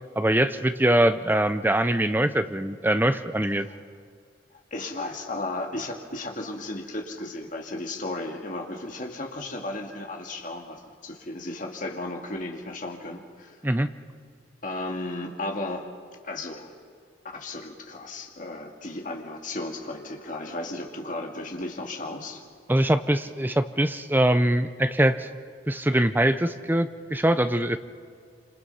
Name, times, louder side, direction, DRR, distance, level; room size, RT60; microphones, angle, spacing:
voice 1, 0.2-3.7 13.6-13.9 22.7-25.3 25.7-27.8, right 1 dB, 10° right, 10 dB, 0.6 m, -23 dB
voice 2, 4.7-13.6 14.6-15.9 16.2-16.7 17.2-22.4, left 2 dB, 40° left, 2 dB, 2.3 m, -34 dB
26.5 x 26.0 x 5.6 m, 2.2 s
head